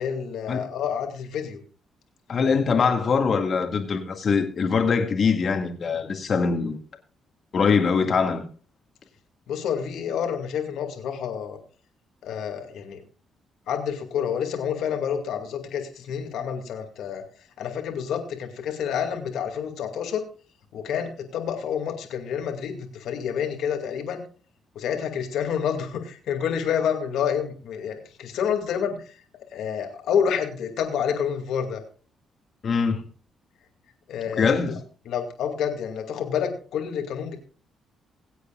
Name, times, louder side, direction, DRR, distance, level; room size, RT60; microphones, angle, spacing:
voice 1, 0.0-1.6 9.5-11.6 12.2-13.0 13.7-20.2 20.7-24.2 24.7-29.2 29.5-31.8 34.1-34.8 35.1-37.4, left 8 dB, 80° left, 2.3 m, -28 dB
voice 2, 2.3-6.8 7.5-8.4 32.6-33.0 34.4-34.8, left 5 dB, 50° left, 2.0 m, -22 dB
22.0 x 8.3 x 2.4 m
cardioid pair, 90°, 0 cm